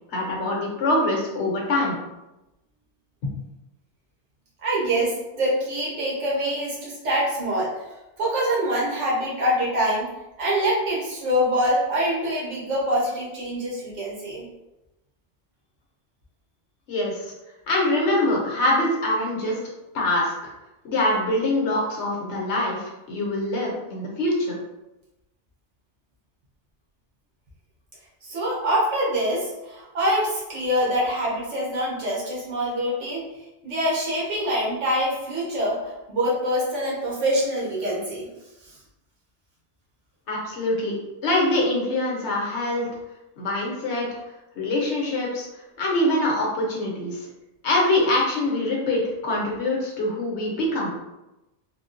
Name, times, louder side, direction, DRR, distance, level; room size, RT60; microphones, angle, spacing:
voice 1, 0.1-2.0 16.9-17.2 17.7-19.6 19.9-20.3 20.8-24.6 40.3-42.9 43.4-44.1 44.5-45.5 45.8-47.3 47.6-50.9, left 1 dB, 70° left, -3 dB, 1.1 m, -24 dB
voice 2, 4.6-7.8 8.2-10.1 10.4-14.4 28.2-33.2 33.6-38.3, equal, 80° right, -5 dB, 1.3 m, -25 dB
3.6 x 2.2 x 2.5 m, 0.97 s
omnidirectional pair, 1.2 m